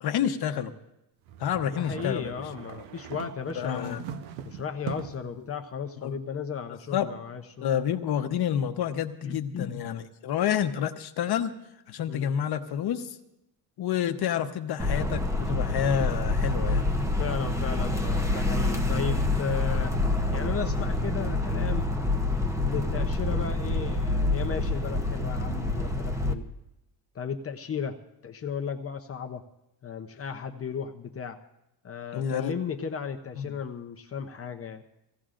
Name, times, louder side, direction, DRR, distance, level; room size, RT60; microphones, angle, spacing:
voice 1, 0.0-0.7 1.4-2.3 3.6-4.0 6.0-6.2 6.9-7.1 7.6-11.5 11.9-13.1 13.8-16.8 32.1-32.5 33.4-33.5, left 9 dB, 50° left, 8 dB, 1.0 m, -29 dB
sound 1, 1.3-5.3, right 9 dB, 75° right, 1.0 m, -41 dB
voice 2, 1.8-4.0 4.4-7.7 9.2-9.8 12.1-12.3 17.2-19.9 20.3-21.9 22.6-26.5 27.1-29.4 29.8-31.4 31.8-34.8, left 7 dB, 30° left, 5 dB, 0.7 m, -35 dB
sound 2, 14.8-26.3, left 2 dB, 5° right, 0.8 m, -27 dB
24.0 x 16.5 x 2.5 m, 0.87 s
cardioid pair, 140°, 49 cm